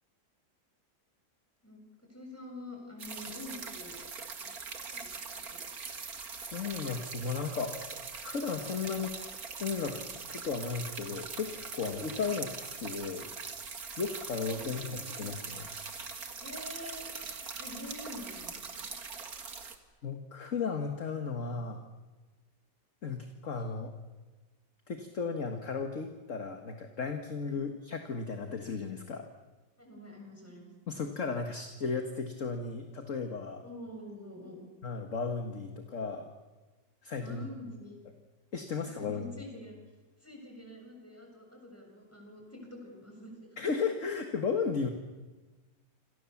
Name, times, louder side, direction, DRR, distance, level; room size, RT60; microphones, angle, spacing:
voice 1, 1.6-3.9 4.4-4.5 4.9-5.6 12.2-12.3 14.5-15.3 16.4-17.1 17.6-18.9 27.4-27.6 29.8-30.7 33.6-34.6 37.2-38.0 38.7-39.8 40.2-43.3, left 1 dB, 5° left, 1 dB, 7.2 m, -46 dB
sound 1, 3.0-19.8, right 5 dB, 55° right, 2.3 m, -42 dB
voice 2, 6.5-7.8 8.2-9.1 9.6-12.5 12.8-13.3 14.0-15.7 20.0-21.8 23.0-23.9 24.9-29.3 30.9-33.6 34.8-36.3 37.0-37.5 38.5-39.3 43.6-44.9, left 5 dB, 45° left, 5 dB, 1.8 m, -35 dB
28.0 x 27.0 x 7.2 m, 1.3 s
omnidirectional pair, 1.9 m